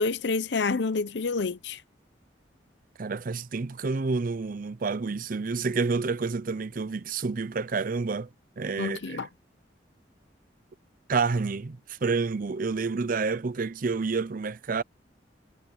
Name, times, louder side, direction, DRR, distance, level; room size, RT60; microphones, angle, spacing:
voice 1, 0.0-1.8 8.8-9.3, left 4 dB, 70° left, 0.7 m, -28 dB
voice 2, 3.0-8.3 8.6-9.3 11.1-14.8, right 4 dB, 50° right, 0.6 m, -29 dB
head